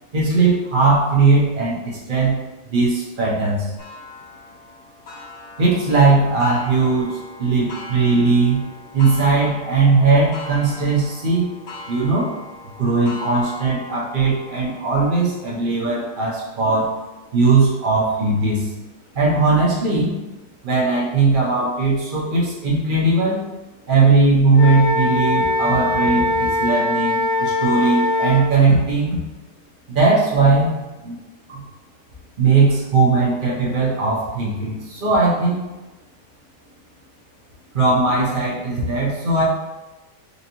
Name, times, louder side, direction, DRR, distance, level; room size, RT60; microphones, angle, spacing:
voice 1, 0.1-2.4 2.7-3.7 5.6-8.6 8.9-11.5 11.9-12.3 12.8-16.9 17.3-18.7 19.1-20.2 20.6-23.4 23.9-29.2 29.9-30.8 31.0-31.2 31.5-31.6 32.4-35.7 37.7-39.4, right 3 dB, 60° right, -5 dB, 0.5 m, -18 dB
Clock, 3.8-19.1 19.7-19.8 20.3-20.4 21.4-21.5, left 3 dB, 85° left, 2.1 m, -40 dB
Wind instrument woodwind instrument, 24.5-28.4, left 2 dB, 65° left, 1.2 m, -21 dB
4.3 x 2.7 x 2.9 m, 1.1 s
omnidirectional pair, 2.0 m